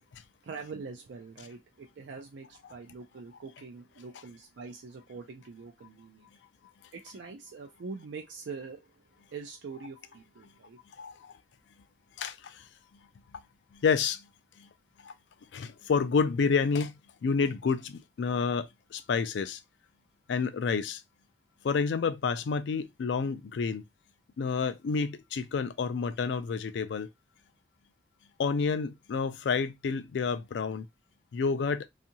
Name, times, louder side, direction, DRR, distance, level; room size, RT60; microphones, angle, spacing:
voice 1, 0.4-6.3 6.9-8.9 9.3-10.8, right 4 dB, 85° right, 0.4 m, -44 dB
voice 2, 11.0-11.3 12.2-12.6 13.7-14.3 14.6-14.7 15.0-15.1 15.5-19.6 20.3-21.0 21.6-23.8 24.4-27.1 28.4-30.9 31.3-31.9, left 5 dB, 80° left, 0.3 m, -29 dB
2.6 x 2.4 x 2.7 m
head